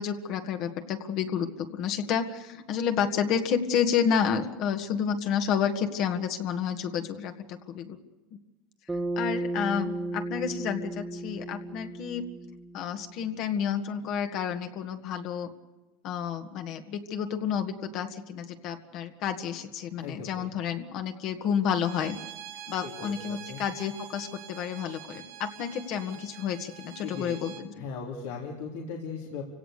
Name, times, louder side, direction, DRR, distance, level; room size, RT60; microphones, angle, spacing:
voice 1, 0.0-8.0 9.2-12.3 12.7-15.5 16.0-22.2 22.7-27.7, left 7 dB, 55° left, 6 dB, 1.9 m, -30 dB
Bass guitar, 8.9-13.3, right 2 dB, 10° right, 1.7 m, -34 dB
voice 2, 20.0-20.5 22.8-23.6 27.0-27.4 27.7-29.4, left 5 dB, 85° left, -2 dB, 3.5 m, -38 dB
Bowed string instrument, 21.7-27.6, right 11 dB, 70° right, 3.5 m, -46 dB
29.0 x 17.5 x 6.8 m, 1.2 s
supercardioid pair, 125°, 0 cm